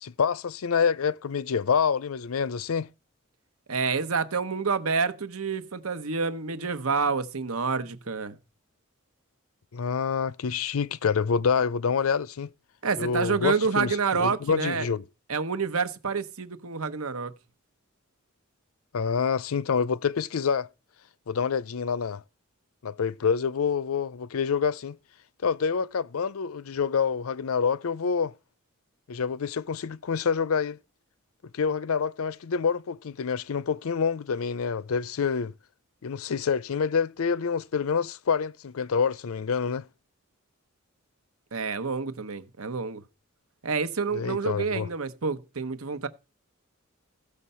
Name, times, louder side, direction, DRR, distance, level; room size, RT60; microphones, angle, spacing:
voice 1, 0.0-2.9 9.7-12.5 13.0-15.0 18.9-20.7 21.3-22.2 22.8-25.0 25.4-28.3 29.1-30.8 31.5-35.5 36.0-39.9 44.1-44.9, left 6 dB, 80° left, 0.5 m, -27 dB
voice 2, 3.7-8.4 12.8-14.9 15.3-17.3 41.5-43.0 43.6-46.1, right 5 dB, 85° right, 1.1 m, -28 dB
15.0 x 6.7 x 5.6 m
head